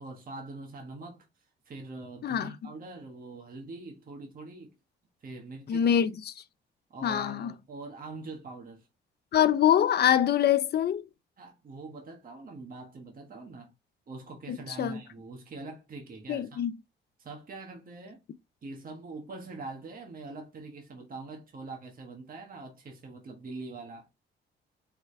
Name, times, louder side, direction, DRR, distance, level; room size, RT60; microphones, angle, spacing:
voice 1, 0.0-4.7 5.2-6.0 6.9-8.9 11.4-13.7 14.1-16.6 17.2-18.2 18.6-24.1, right 3 dB, 45° right, 1.5 m, -43 dB
voice 2, 2.2-2.5 5.7-6.4 7.0-7.5 9.3-11.0 14.5-15.0 16.3-16.7, left 10 dB, 55° left, 0.7 m, -25 dB
4.8 x 3.3 x 3.2 m
cardioid pair, 90°, 20 cm